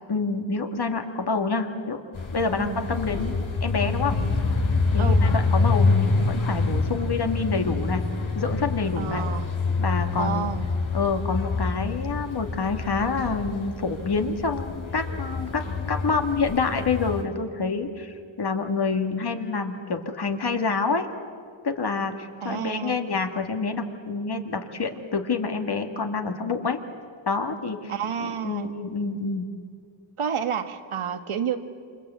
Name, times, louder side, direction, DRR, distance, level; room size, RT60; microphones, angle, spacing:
voice 1, 0.1-2.0 2.3-4.2 4.9-8.0 8.4-9.3 9.8-10.5 10.9-15.6 15.9-21.1 21.6-26.8 27.3-27.9 28.2-29.5, left 4 dB, 50° left, 6 dB, 2.1 m, -27 dB
sound 1, 2.1-17.2, left 3 dB, 70° left, 3.2 m, -26 dB
voice 2, 9.0-9.4 10.2-10.7 22.4-23.0 27.9-28.7 30.2-31.6, right 8 dB, 90° right, 8 dB, 1.6 m, -29 dB
27.0 x 26.0 x 8.3 m, 2.2 s
wide cardioid pair, 105°, 48 cm